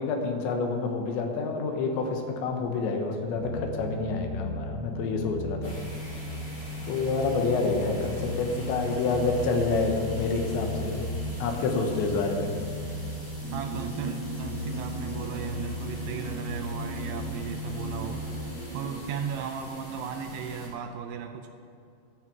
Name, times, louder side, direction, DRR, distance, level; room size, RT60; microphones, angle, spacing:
voice 1, 0.0-5.7 6.8-11.0 11.4-12.5, left 3 dB, 90° left, 3 dB, 3.4 m, -28 dB
sound 1, 3.3-18.4, left 1 dB, 45° left, 3.1 m, -36 dB
sound 2, 5.6-20.7, equal, 15° left, 1.9 m, -44 dB
sound 3, 13.4-19.1, right 4 dB, 10° right, 1.8 m, -40 dB
voice 2, 13.5-18.2 18.7-21.5, right 7 dB, 80° right, 6 dB, 2.4 m, -36 dB
13.5 x 6.1 x 8.1 m, 2.5 s
omnidirectional pair, 5.1 m